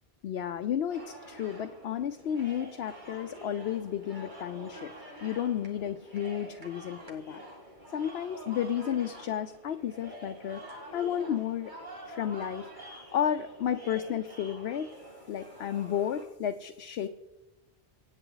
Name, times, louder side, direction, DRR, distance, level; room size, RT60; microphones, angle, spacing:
voice 1, 0.2-4.9 5.2-7.4 7.9-10.6 10.9-11.7 12.1-14.9 15.3-17.1, left 9 dB, 80° left, 7 dB, 0.9 m, -32 dB
sound 1, 0.9-16.2, right 1 dB, 50° right, 2.3 m, -47 dB
24.5 x 9.0 x 3.9 m, 0.99 s
omnidirectional pair, 1.0 m